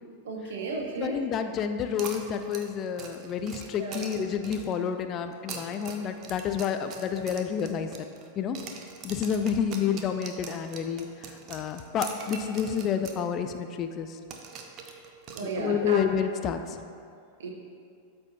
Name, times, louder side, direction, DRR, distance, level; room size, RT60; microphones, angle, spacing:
voice 1, 0.2-1.2 3.8-4.1 15.3-16.0 17.4-17.5, right 4 dB, 60° right, 0 dB, 1.1 m, -33 dB
voice 2, 1.0-7.9 8.4-8.6 9.0-14.2 15.4-16.8, left 7 dB, 30° left, 8 dB, 0.4 m, -29 dB
sound 1, 2.0-4.8 5.3-8.3 8.5-13.2 13.5-13.6 14.3-15.9, right 6 dB, 35° right, 0.7 m, -43 dB
12.0 x 4.4 x 2.8 m, 2.4 s
figure-of-eight pair, 90°, 0 cm